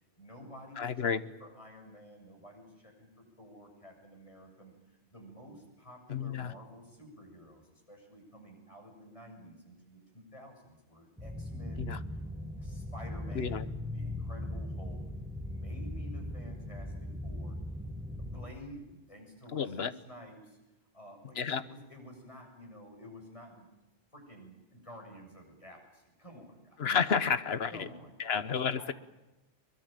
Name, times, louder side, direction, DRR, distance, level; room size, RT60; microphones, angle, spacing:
voice 1, 0.1-1.1 1.4-12.2 12.6-15.0 15.4-17.6 18.2-20.6 20.9-23.7 24.1-26.9 27.7-28.3 28.8-28.9, equal, 30° left, 2 dB, 7.2 m, -51 dB
voice 2, 0.8-1.2 6.1-6.5 11.8-12.0 13.3-13.7 19.5-19.9 21.4-21.6 26.8-27.9 28.2-28.9, left 6 dB, 75° left, 14 dB, 1.3 m, -31 dB
sound 1, 11.2-18.4, left 1 dB, 5° right, 3.2 m, -39 dB
23.0 x 22.5 x 9.1 m, 1.0 s
omnidirectional pair, 1.1 m